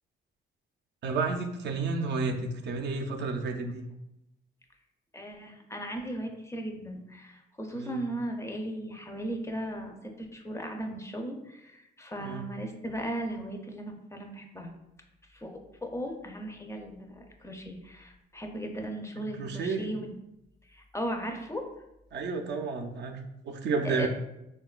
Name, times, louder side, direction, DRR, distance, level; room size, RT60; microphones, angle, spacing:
voice 1, 1.0-3.9 7.7-8.1 12.2-12.5 19.2-19.9 22.1-24.1, right 4 dB, 60° right, 4 dB, 0.4 m, -32 dB
voice 2, 5.1-14.7 15.3-20.1 20.6-21.6 23.8-24.1, right 1 dB, 15° left, 3 dB, 0.4 m, -37 dB
3.6 x 2.2 x 2.3 m, 0.87 s
cardioid pair, 90°, 20 cm